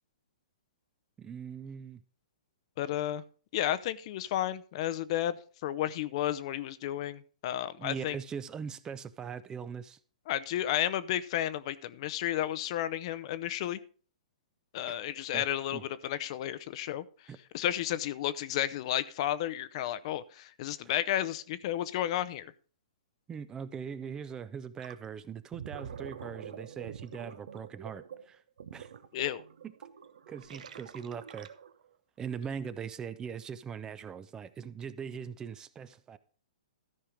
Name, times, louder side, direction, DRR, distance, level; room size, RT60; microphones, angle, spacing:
voice 1, 1.2-2.0 7.8-10.0 14.9-15.0 15.3-15.4 15.7-15.8 17.3-17.4 23.3-28.4 28.7-28.9 29.6-29.7 30.3-31.5 32.2-36.2, right 7 dB, 15° right, 0.5 m, -41 dB
voice 2, 2.8-3.2 3.5-8.2 10.3-13.8 14.7-17.0 17.5-22.5 29.1-29.4, left 12 dB, 45° left, 0.6 m, -32 dB
Gurgling, 24.8-25.0 25.4-31.9, right 7 dB, 70° right, 0.9 m, -46 dB
13.5 x 5.6 x 5.0 m
hypercardioid pair, 135°, 4 cm